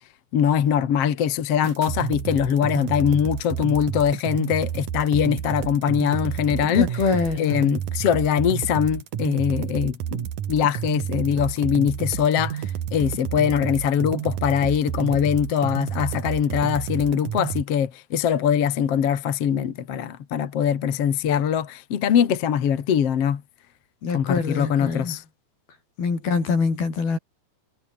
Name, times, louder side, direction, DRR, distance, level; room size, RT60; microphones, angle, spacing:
voice 1, 0.3-6.9 7.4-12.6 12.9-23.4 24.1-25.2, left 8 dB, 50° left, 2.3 m, -22 dB
sound 1, 1.6-17.6, right 9 dB, 60° right, 3.2 m, -30 dB
voice 2, 6.7-7.6 24.0-25.2 26.0-27.2, left 4 dB, 70° left, 8.3 m, -24 dB
omnidirectional pair, 4.4 m